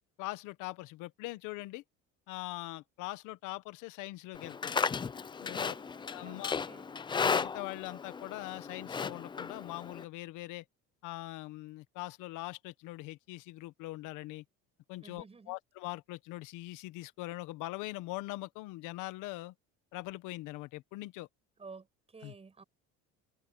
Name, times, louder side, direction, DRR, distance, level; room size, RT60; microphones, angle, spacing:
voice 1, 0.2-1.8 2.3-4.8 5.4-5.7 6.1-6.6 7.2-10.6 11.0-14.4 14.9-19.5 19.9-21.3 22.2-22.3, left 19 dB, 85° left, 1.4 m, -42 dB
Livestock farm animals working animals, 4.4-10.0, left 5 dB, 15° left, 0.4 m, -35 dB
voice 2, 5.5-7.0 15.0-15.6 21.6-22.6, right 4 dB, 20° right, 6.6 m, -52 dB
cardioid pair, 145°, 31 cm